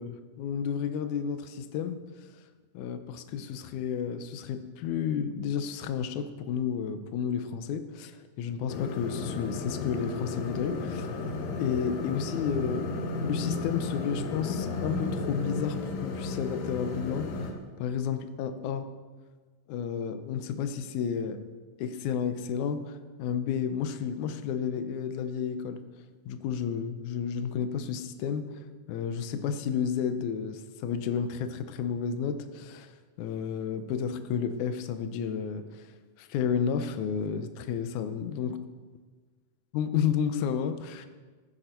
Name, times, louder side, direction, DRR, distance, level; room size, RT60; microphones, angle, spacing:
voice 1, 0.0-2.0 2.7-8.1 8.4-11.1 11.6-18.9 19.7-21.4 21.8-25.8 26.3-28.5 28.9-32.9 33.2-35.7 36.2-38.6 39.7-41.1, left 7 dB, 70° left, 9 dB, 2.1 m, -31 dB
sound 1, 8.7-17.5, left 3 dB, 90° left, 3.1 m, -34 dB
14.5 x 13.0 x 4.4 m, 1.4 s
omnidirectional pair, 3.9 m